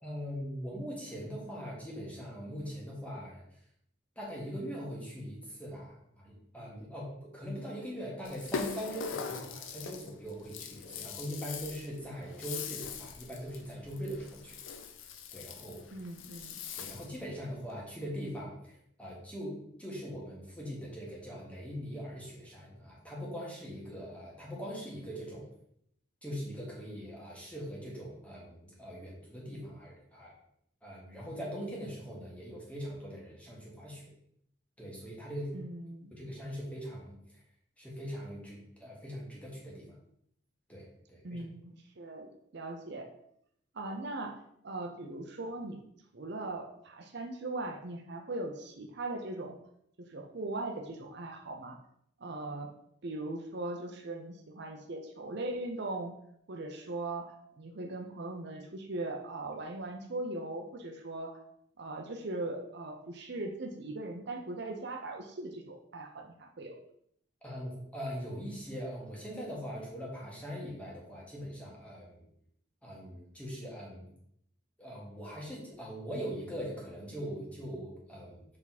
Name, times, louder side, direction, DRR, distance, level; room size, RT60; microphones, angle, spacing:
voice 1, 0.0-3.4 4.1-14.6 15.3-15.8 16.8-25.5 26.2-30.3 30.8-34.1 34.8-35.5 36.1-37.2 37.8-40.0 40.7-41.4 67.4-72.3 72.8-74.1 74.8-78.4, equal, 5° left, -4 dB, 1.7 m, -41 dB
Rattle (instrument), 8.2-17.2, left 6 dB, 85° left, 0.6 m, -42 dB
voice 2, 15.9-16.6 35.5-36.1 41.2-43.1 43.7-44.3 44.6-45.8 46.1-49.6 50.1-51.8 52.2-52.7 53.0-56.1 56.5-61.4 61.8-66.8, right 2 dB, 60° right, 3 dB, 0.7 m, -39 dB
6.7 x 3.6 x 4.1 m, 0.72 s
head